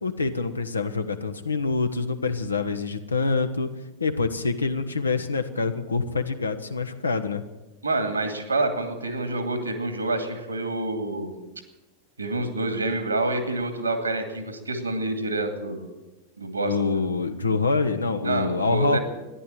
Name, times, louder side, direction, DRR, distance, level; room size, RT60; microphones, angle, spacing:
voice 1, 0.0-3.7 4.0-7.4 16.6-19.0, left 4 dB, 75° left, 9 dB, 1.1 m, -26 dB
voice 2, 7.8-11.4 12.2-15.9 16.4-16.9 18.2-19.0, right 2 dB, 80° right, 7 dB, 2.3 m, -27 dB
14.0 x 11.0 x 9.1 m, 1.1 s
figure-of-eight pair, 90°, 0 cm